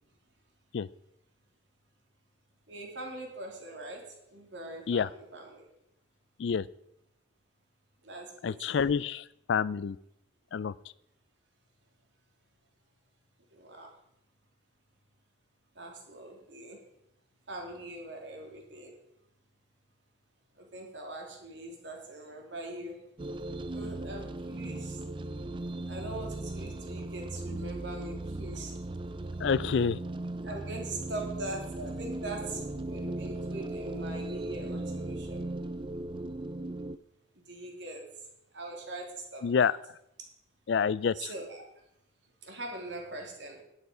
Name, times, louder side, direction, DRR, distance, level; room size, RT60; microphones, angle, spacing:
voice 1, 2.7-5.7 8.0-8.7 13.5-13.9 15.7-16.8 17.5-19.0 20.6-23.0 23.7-25.0 25.9-28.8 30.4-35.5 37.3-38.2 38.5-39.7 41.1-41.7 42.4-43.6, right 2 dB, 65° right, 1 dB, 2.9 m, -42 dB
voice 2, 8.4-10.0 10.5-10.7 29.4-30.0 39.4-39.8 40.7-41.3, left 6 dB, 60° left, 20 dB, 0.4 m, -28 dB
sound 1, 23.2-37.0, right 2 dB, 25° right, 0.4 m, -37 dB
11.0 x 9.2 x 5.0 m, 0.80 s
head